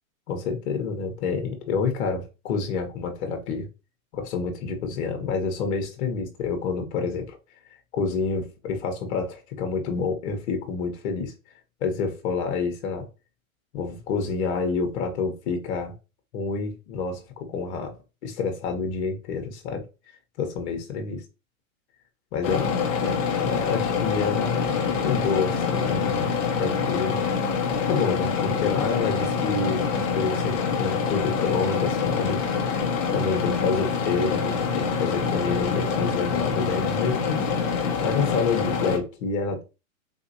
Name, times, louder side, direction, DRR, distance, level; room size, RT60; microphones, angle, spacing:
voice 1, 0.3-3.7 4.1-7.4 7.9-11.3 11.8-13.1 13.7-15.9 16.3-19.8 20.4-21.2 22.3-22.8 23.0-27.2 27.9-37.4 38.0-39.6, left 5 dB, 50° left, 1.0 m, -28 dB
sound 1, 22.4-39.0, left 5 dB, 25° left, 0.4 m, -25 dB
3.4 x 2.7 x 2.7 m
hypercardioid pair, 140°, 42 cm